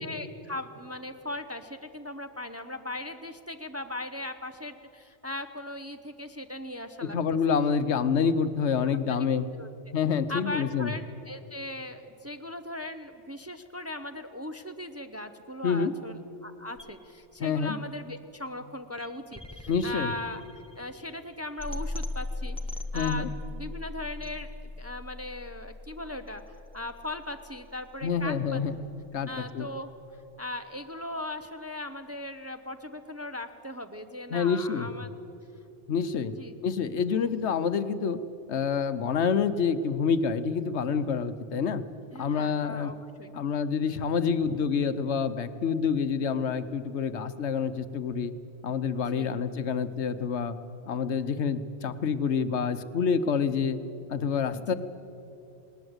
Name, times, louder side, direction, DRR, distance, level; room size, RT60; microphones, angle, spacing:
voice 1, 0.0-7.2 9.2-9.3 9.6-9.7 10.3-20.4 20.8-22.6 22.9-26.4 26.7-28.6 29.3-29.9 30.4-35.1 36.3-36.5 42.1-43.3 44.4-44.6 49.1-49.4 54.5-54.7, left 2 dB, 15° right, 7 dB, 0.6 m, -38 dB
voice 2, 7.0-9.5 9.9-10.9 15.6-15.9 17.4-17.8 19.7-20.1 22.9-23.3 28.0-28.8 29.1-29.7 34.3-34.9 35.9-36.3 36.6-38.2 38.5-41.8 42.2-42.9 43.3-48.3 48.6-50.6 50.9-53.8 54.1-54.7, left 6 dB, 75° left, 12 dB, 1.1 m, -27 dB
sound 1, 16.8-28.8, left 2 dB, 5° left, 1.1 m, -40 dB
20.0 x 19.0 x 8.0 m, 2.8 s
omnidirectional pair, 1.2 m